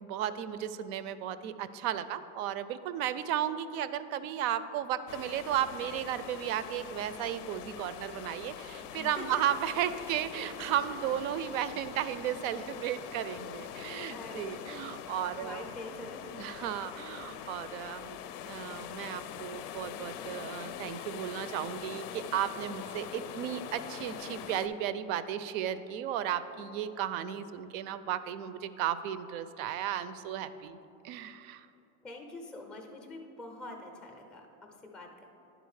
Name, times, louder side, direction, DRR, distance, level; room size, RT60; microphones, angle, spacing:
voice 1, 0.0-15.6 16.3-18.2 18.4-30.8 31.0-31.7, right 10 dB, 65° right, 13 dB, 0.5 m, -34 dB
sound 1, 5.1-24.7, left 9 dB, 90° left, 0.5 m, -43 dB
voice 2, 9.0-9.6 10.4-11.1 14.1-16.3 32.0-35.3, left 2 dB, ahead, 2 dB, 0.4 m, -46 dB
10.0 x 3.8 x 4.8 m, 2.9 s
supercardioid pair, 130°, 45 cm